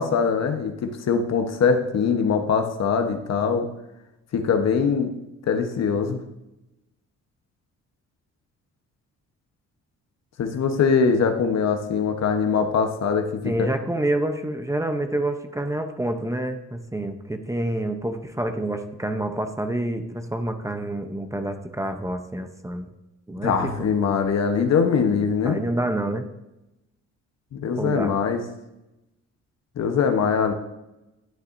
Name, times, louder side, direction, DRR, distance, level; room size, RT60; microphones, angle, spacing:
voice 1, 0.0-3.7 4.3-5.1 5.5-6.2 10.4-13.7 23.4-25.6 27.5-28.4 29.8-30.5, left 6 dB, 60° left, 6 dB, 1.1 m, -22 dB
voice 2, 13.4-22.9 23.3-23.9 25.4-26.3 27.8-28.1, right 1 dB, 10° right, 6 dB, 0.7 m, -28 dB
11.5 x 8.0 x 2.6 m, 0.93 s
cardioid pair, 90°, 30 cm